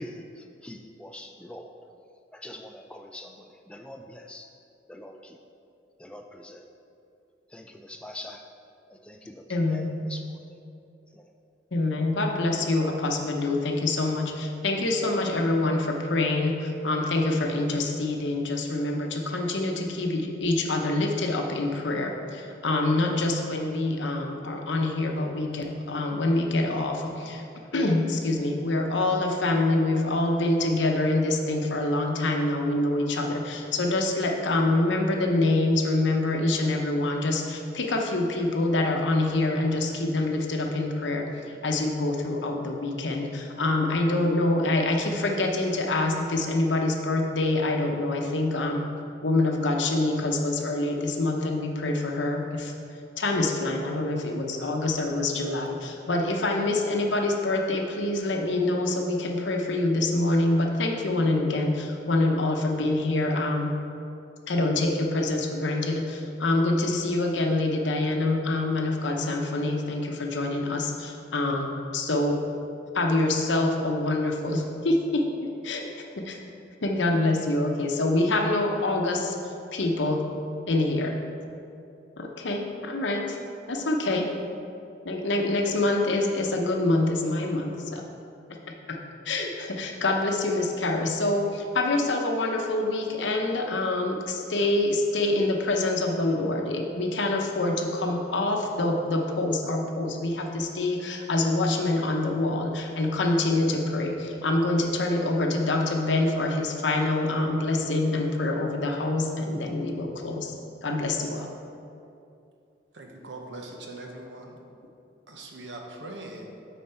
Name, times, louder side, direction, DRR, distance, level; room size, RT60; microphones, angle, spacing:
voice 1, 0.0-1.7 2.3-4.5 4.9-5.4 6.0-6.6 7.5-8.5 8.9-10.4 11.1-11.3, left 1 dB, 5° left, 3 dB, 0.4 m, -43 dB
voice 2, 9.5-10.0 11.7-27.4 27.7-48.9 49.2-52.7 53.2-63.7 64.5-72.4 72.9-75.9 76.2-76.4 76.8-80.2 80.7-81.2 82.2-83.4 83.7-84.3 85.0-88.1 88.5-88.6 88.9-89.0 89.2-110.5 110.8-111.5, left 2 dB, 80° left, 2 dB, 0.8 m, -26 dB
voice 3, 112.9-114.6 115.3-116.5, right 2 dB, 80° right, 2 dB, 0.9 m, -41 dB
9.0 x 4.2 x 4.3 m, 2.7 s
head